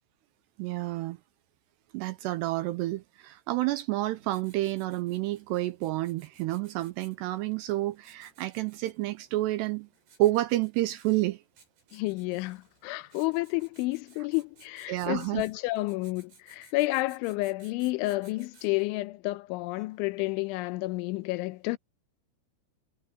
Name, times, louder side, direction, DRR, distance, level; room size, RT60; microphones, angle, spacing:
voice 1, 0.6-1.2 1.9-9.9 10.2-11.4 14.9-15.4, right 17 dB, 85° right, 2.5 m, -29 dB
Writing, 4.0-19.0, right 4 dB, 60° right, 9.2 m, -60 dB
voice 2, 11.9-21.8, left 21 dB, 90° left, 3.2 m, -30 dB
omnidirectional pair, 5.4 m